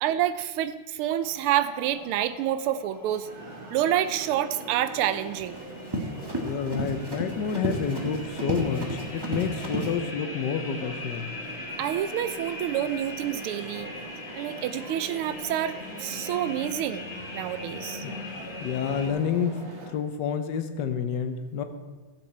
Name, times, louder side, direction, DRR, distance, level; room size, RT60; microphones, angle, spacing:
voice 1, 0.0-3.3 3.7-5.6 11.8-13.9 14.3-17.0 17.3-18.0, right 11 dB, 85° right, 13 dB, 1.5 m, -28 dB
sound 1, 1.2-19.1, left 3 dB, 45° left, 1.3 m, -42 dB
sound 2, 3.2-19.9, right 1 dB, 65° right, 2.5 m, -42 dB
Run, 5.1-9.9, right 1 dB, 15° right, 1.0 m, -32 dB
voice 2, 6.4-11.3 18.0-18.2 18.6-19.6 19.9-21.6, left 7 dB, 65° left, 8 dB, 1.2 m, -29 dB
14.5 x 7.3 x 4.3 m, 1.3 s
omnidirectional pair, 2.3 m